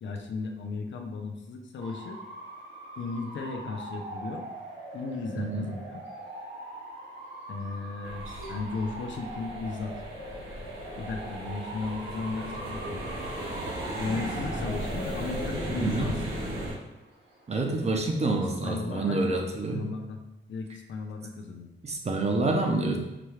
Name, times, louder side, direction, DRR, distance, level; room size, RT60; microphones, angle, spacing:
voice 1, 0.0-2.2 3.0-4.5 4.9-6.0 7.5-9.9 11.0-13.0 14.0-16.6 18.6-20.2 20.5-21.7, left 4 dB, 60° left, 3 dB, 0.6 m, -35 dB
Bark / Motor vehicle (road) / Siren, 1.8-18.1, right 1 dB, 65° right, 1.5 m, -42 dB
voice 2, 5.4-5.7 15.8-16.1 17.5-19.9 21.8-23.0, right 2 dB, 30° right, 3 dB, 0.6 m, -27 dB
sound 1, 8.0-16.7, right 1 dB, 85° right, 1.2 m, -36 dB
5.8 x 2.3 x 3.2 m, 0.97 s
wide cardioid pair, 155°, 21 cm